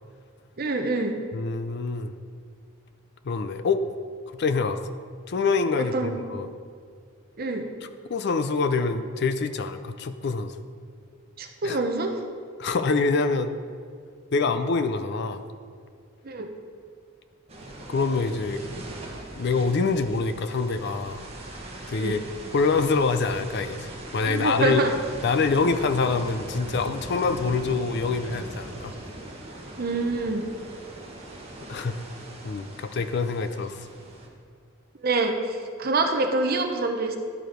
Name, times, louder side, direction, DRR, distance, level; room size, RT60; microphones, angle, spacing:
voice 1, 0.6-1.2 5.8-6.2 7.4-7.6 11.4-12.1 16.2-16.5 21.9-22.2 24.2-24.9 29.8-30.5 35.0-37.2, right 2 dB, 45° right, 5 dB, 0.7 m, -26 dB
voice 2, 1.3-2.1 3.2-3.8 4.4-4.8 5.3-6.5 8.1-10.5 11.6-11.8 12.6-13.5 14.3-15.4 17.9-18.6 19.4-21.2 21.9-22.2 22.5-24.8 25.2-28.9 31.7-32.0 32.4-33.9, left 4 dB, 55° left, 10 dB, 0.4 m, -25 dB
sound 1, 17.5-34.3, right 1 dB, 30° right, 1.1 m, -40 dB
11.0 x 4.7 x 5.1 m, 2.1 s
head